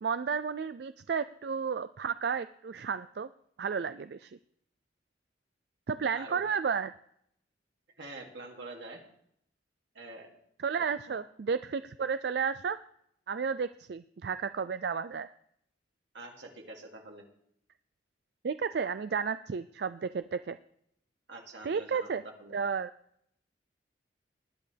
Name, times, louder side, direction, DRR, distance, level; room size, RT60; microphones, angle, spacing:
voice 1, 0.0-3.3 3.6-4.4 5.9-6.9 10.6-12.8 13.3-15.3 18.4-20.6 21.6-22.2 22.5-22.9, right 6 dB, 60° right, 12 dB, 0.4 m, -32 dB
voice 2, 8.0-9.0 9.9-10.3 11.1-11.2 16.1-17.3 21.3-22.5, right 2 dB, 85° right, 0 dB, 2.6 m, -45 dB
19.5 x 10.5 x 3.4 m, 0.71 s
head